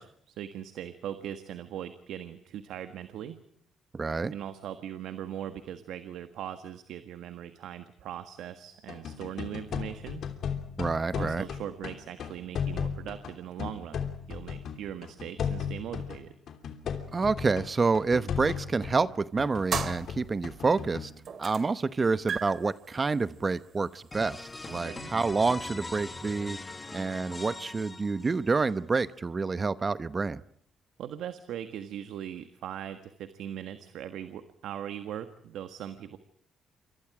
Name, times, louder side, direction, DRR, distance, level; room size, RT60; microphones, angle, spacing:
voice 1, 0.0-3.4 4.3-10.2 11.1-14.0 14.3-16.3 24.7-25.1 31.0-36.2, right 10 dB, 80° right, 10 dB, 1.5 m, -40 dB
voice 2, 3.9-4.3 10.8-11.4 17.1-21.1 21.4-26.6 26.9-30.4, right 4 dB, 30° right, 15 dB, 0.9 m, -28 dB
sound 1, 8.9-19.1 19.4-21.1, left 7 dB, 65° left, 3.0 m, -35 dB
sound 2, 19.7-20.7 21.2-21.8 22.0-24.8, right 7 dB, 55° right, 2.5 m, -37 dB
sound 3, 24.1-28.7, left 3 dB, 20° left, 1.5 m, -41 dB
28.0 x 25.0 x 4.9 m, 0.66 s
cardioid pair, 90°, 0 cm